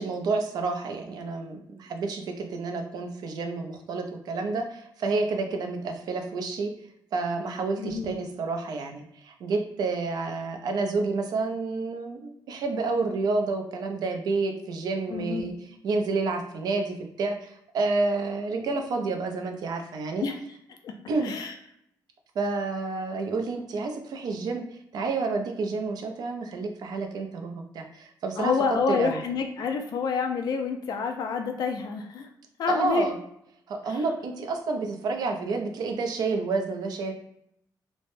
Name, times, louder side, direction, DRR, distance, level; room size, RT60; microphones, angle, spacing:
voice 1, 0.0-6.7 7.1-15.5 15.8-20.2 21.1-21.3 22.4-24.6 24.9-28.5 28.9-29.2 32.7-33.2 33.7-37.1, right 3 dB, 60° right, 4 dB, 0.5 m, -29 dB
voice 2, 7.8-8.1 15.1-15.5 20.2-20.4 20.8-20.9 21.2-21.5 28.4-32.3 32.6-33.1 33.9-34.0, left 5 dB, 60° left, 5 dB, 0.4 m, -28 dB
3.1 x 2.1 x 2.6 m, 0.75 s
cardioid pair, 160°, 8 cm